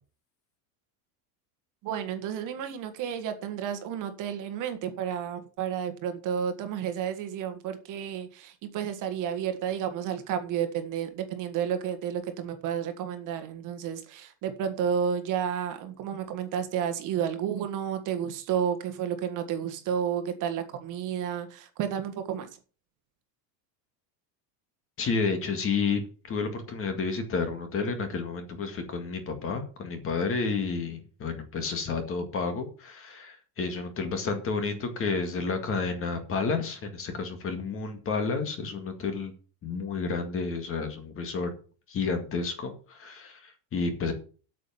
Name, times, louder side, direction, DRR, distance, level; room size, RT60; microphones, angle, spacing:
voice 1, 1.8-22.5, right 8 dB, 40° right, 1.6 m, -31 dB
voice 2, 25.0-26.0 26.3-39.3 39.6-41.5 41.9-44.1, left 4 dB, 25° left, 2.0 m, -31 dB
8.6 x 7.3 x 7.2 m
cardioid pair, 165°, 49 cm